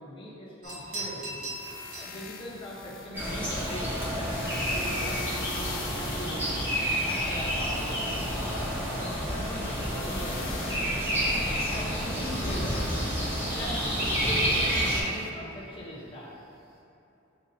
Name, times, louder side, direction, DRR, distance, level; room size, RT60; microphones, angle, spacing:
voice 1, 0.0-1.4 1.9-5.6 5.9-6.7 7.1-8.5 8.9-10.8 11.1-13.0 13.3-16.3, equal, 25° left, -7 dB, 0.8 m, -41 dB
sound 1, 0.6-16.8, right 2 dB, 45° right, 0.8 m, -47 dB
sound 2, 0.7-15.3, left 3 dB, 70° left, 0.4 m, -44 dB
sound 3, 3.1-15.0, equal, 10° right, 0.7 m, -29 dB
6.6 x 2.7 x 2.7 m, 2.8 s
head